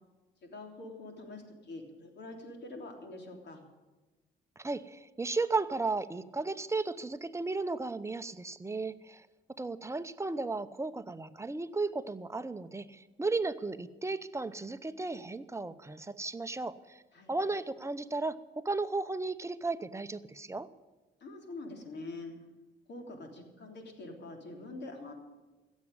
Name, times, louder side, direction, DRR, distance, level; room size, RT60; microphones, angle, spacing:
voice 1, 0.4-3.6 17.1-17.3 21.2-22.3 22.9-25.1, left 2 dB, 60° left, 3 dB, 3.3 m, -45 dB
voice 2, 4.6-9.3 9.6-17.0 17.3-20.7, right 3 dB, 15° right, 11 dB, 0.7 m, -35 dB
16.0 x 7.3 x 9.8 m, 1.2 s
cardioid pair, 90°, 20 cm